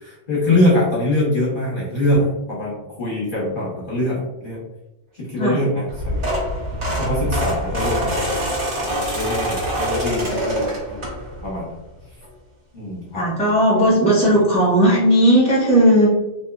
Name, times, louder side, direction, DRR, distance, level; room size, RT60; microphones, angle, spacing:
voice 1, 0.0-4.6 5.1-6.3 6.8-8.2 8.8-11.0 11.4-11.7 12.7-13.3, left 1 dB, 45° left, -6 dB, 1.2 m, -23 dB
sound 1, 5.9-11.5 12.0-12.3 13.5-13.6 13.8-13.9 14.3-14.4, equal, 70° right, 1.5 m, -24 dB
voice 2, 13.1-16.1, right 1 dB, 5° left, -5 dB, 1.1 m, -16 dB
3.5 x 2.9 x 2.3 m, 0.95 s
omnidirectional pair, 1.3 m